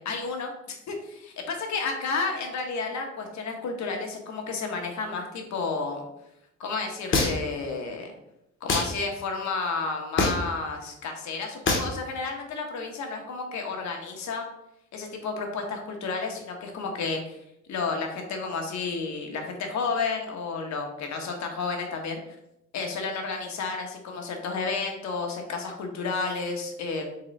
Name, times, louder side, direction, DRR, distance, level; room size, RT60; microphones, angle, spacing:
voice 1, 0.0-6.0 6.6-8.1 8.6-14.5 14.9-17.4 17.7-22.2 22.7-27.1, left 4 dB, 65° left, 3 dB, 1.1 m, -31 dB
sound 1, 7.1-7.6 8.7-8.9 10.2-10.5 11.7-11.9, left 3 dB, 40° left, 1.0 m, -24 dB
3.9 x 3.7 x 3.1 m, 0.82 s
cardioid pair, 90°, 30 cm